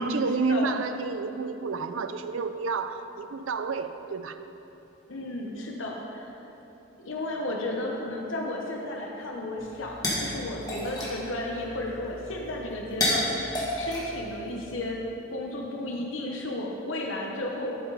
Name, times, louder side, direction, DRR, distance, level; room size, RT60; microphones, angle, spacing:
voice 1, 0.0-4.4, right 4 dB, 85° right, 10 dB, 0.5 m, -30 dB
voice 2, 5.1-6.3 7.0-15.0 15.3-17.8, left 1 dB, 80° left, -1 dB, 1.1 m, -33 dB
sound 1, 9.6-14.9, left 1 dB, 20° left, 1.9 m, -32 dB
11.0 x 8.2 x 4.0 m, 3.0 s
head